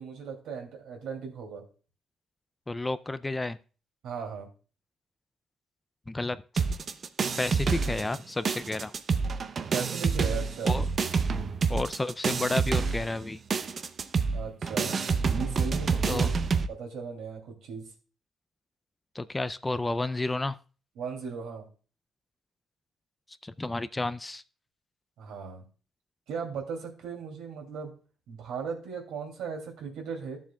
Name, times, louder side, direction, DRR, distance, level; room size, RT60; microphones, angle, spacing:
voice 1, 0.0-1.6 4.0-4.5 9.7-10.7 14.3-16.3 16.7-17.9 21.0-21.7 25.2-25.6 26.3-27.9 28.3-30.4, right 6 dB, 85° right, 2 dB, 2.6 m, -37 dB
voice 2, 2.7-3.6 6.1-6.6 7.4-8.9 10.6-10.8 11.7-13.4 16.1-16.3 19.1-20.6 23.4-24.4, left 2 dB, 15° left, 14 dB, 0.4 m, -31 dB
sound 1, 6.6-8.2 8.4-16.7, right 5 dB, 45° right, 0.6 m, -28 dB
13.5 x 7.3 x 2.3 m, 0.38 s
cardioid pair, 90°, 0 cm